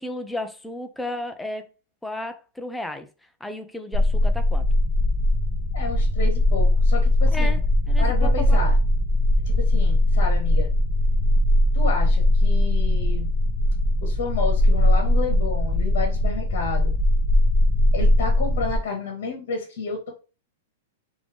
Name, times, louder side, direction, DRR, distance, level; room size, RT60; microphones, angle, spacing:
voice 1, 0.0-1.7 2.0-3.1 3.4-4.6 7.3-7.6 7.9-8.7, left 1 dB, 5° left, 0.3 m, -33 dB
sound 1, 3.9-18.8, left 1 dB, 25° right, 0.8 m, -20 dB
voice 2, 5.7-7.6 8.0-8.8 9.5-10.7 11.7-13.3 14.0-16.9 17.9-20.1, left 4 dB, 55° left, 1.1 m, -30 dB
3.2 x 2.6 x 3.4 m
supercardioid pair, 165°, 0 cm